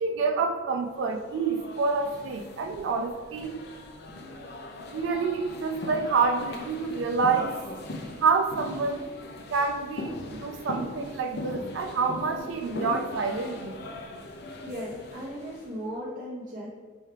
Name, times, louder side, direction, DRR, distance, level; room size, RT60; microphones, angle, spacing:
voice 1, 0.0-3.6 4.9-7.6 8.2-9.1 9.5-10.1 10.4-13.8, right 4 dB, 65° right, 5 dB, 0.3 m, -27 dB
sound 1, 1.0-15.7, left 1 dB, 50° left, 0.4 m, -40 dB
voice 2, 14.6-16.7, equal, 40° right, -8 dB, 0.7 m, -37 dB
4.5 x 3.1 x 3.2 m, 1.5 s
head